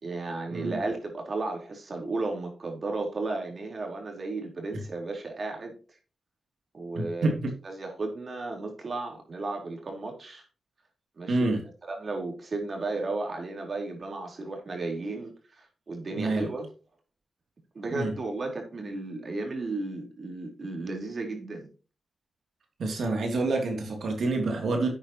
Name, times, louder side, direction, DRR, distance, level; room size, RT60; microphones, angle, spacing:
voice 1, 0.0-5.7 6.7-7.4 7.6-10.4 11.2-11.5 11.9-16.7 17.7-21.7, right 3 dB, 45° right, 3.9 m, -34 dB
voice 2, 7.0-7.5 11.3-11.6 16.2-16.5 17.9-18.1 22.8-24.9, right 2 dB, 70° right, 2.7 m, -27 dB
11.0 x 8.9 x 3.0 m
cardioid pair, 85°, 0 cm